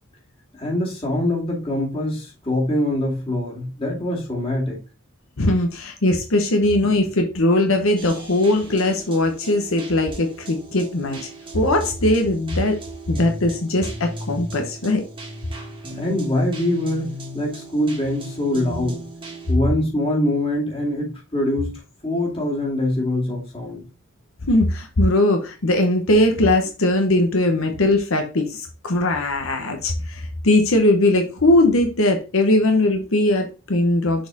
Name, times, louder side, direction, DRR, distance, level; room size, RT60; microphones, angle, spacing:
voice 1, 0.5-4.8 15.9-17.1 17.3-19.0 19.5-23.8, left 1 dB, 25° left, -3 dB, 2.3 m, -24 dB
voice 2, 5.4-11.3 11.5-12.8 13.1-15.0 24.4-34.3, left 1 dB, 75° left, 4 dB, 0.9 m, -20 dB
sound 1, 8.0-19.5, right 1 dB, 25° right, 1.5 m, -37 dB
6.7 x 4.2 x 3.8 m, 0.32 s
head